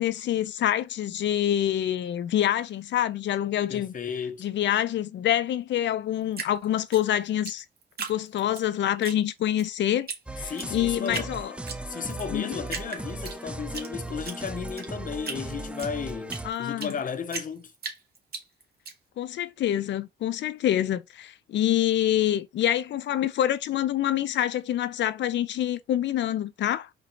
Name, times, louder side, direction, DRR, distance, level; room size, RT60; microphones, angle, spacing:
voice 1, 0.0-3.9 4.4-7.6 8.1-10.1 10.4-11.5 12.3-12.6 16.4-16.9 19.2-26.9, left 11 dB, 65° left, 0.6 m, -26 dB
voice 2, 3.7-4.4 10.4-11.4 11.9-17.7, left 6 dB, 40° left, 0.9 m, -34 dB
Drip, 6.3-8.6 9.0-9.7 10.1-10.2 10.5-11.3 11.7-12.3 12.7-13.9 14.2-17.0 17.3-18.9, right 5 dB, 50° right, 1.7 m, -36 dB
sound 1, 10.3-16.5, right 2 dB, 5° right, 0.5 m, -37 dB
4.6 x 2.7 x 3.9 m
cardioid pair, 90°, 20 cm